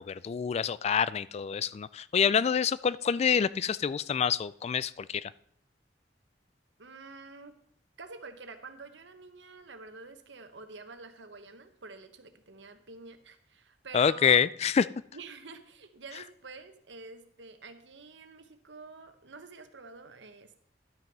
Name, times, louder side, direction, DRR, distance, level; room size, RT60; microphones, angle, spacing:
voice 1, 0.0-5.3 13.9-14.9, left 7 dB, 35° left, 18 dB, 0.3 m, -27 dB
voice 2, 6.8-7.6 8.0-14.4 15.1-20.6, right 4 dB, 85° right, 8 dB, 1.2 m, -48 dB
12.0 x 6.2 x 6.0 m, 0.65 s
head